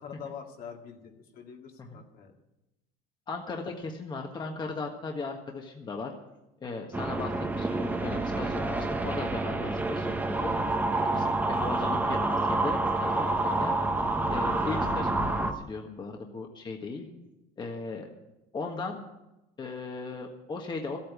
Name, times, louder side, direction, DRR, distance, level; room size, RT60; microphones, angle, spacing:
voice 1, 0.0-2.3 11.0-11.3, left 7 dB, 55° left, 2 dB, 2.1 m, -45 dB
voice 2, 3.3-6.1 6.6-8.7 8.9-13.7 14.3-17.1 17.6-18.1 18.5-19.1 19.6-21.0, left 3 dB, 25° left, 2 dB, 1.6 m, -37 dB
sound 1, 6.9-15.5, right 2 dB, 10° right, 1.1 m, -28 dB
14.0 x 8.7 x 8.4 m, 0.94 s
cardioid pair, 135°, 18 cm